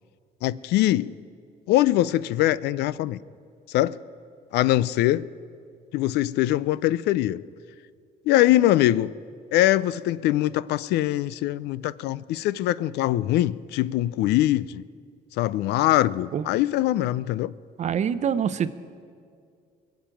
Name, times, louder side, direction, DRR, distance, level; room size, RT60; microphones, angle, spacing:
voice 1, 0.4-1.1 1.7-3.2 3.7-4.0 4.5-5.3 5.9-7.4 8.3-9.1 9.5-14.8 15.4-17.5, left 15 dB, 80° left, 0.4 m, -22 dB
voice 2, 17.8-18.7, right 8 dB, 45° right, 0.7 m, -25 dB
21.5 x 7.4 x 8.9 m
cardioid pair, 110°, 17 cm